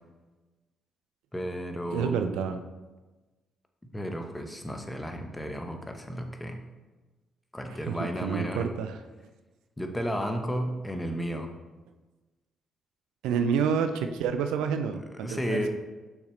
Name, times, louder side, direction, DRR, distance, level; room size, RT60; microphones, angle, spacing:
voice 1, 1.3-2.2 3.9-6.6 7.5-8.7 9.8-11.5 15.2-15.7, equal, 15° left, 5 dB, 1.0 m, -33 dB
voice 2, 1.9-2.6 7.7-9.0 13.2-15.7, right 6 dB, 85° right, 8 dB, 0.4 m, -29 dB
6.5 x 5.8 x 3.2 m, 1.2 s
supercardioid pair, 60°, 0 cm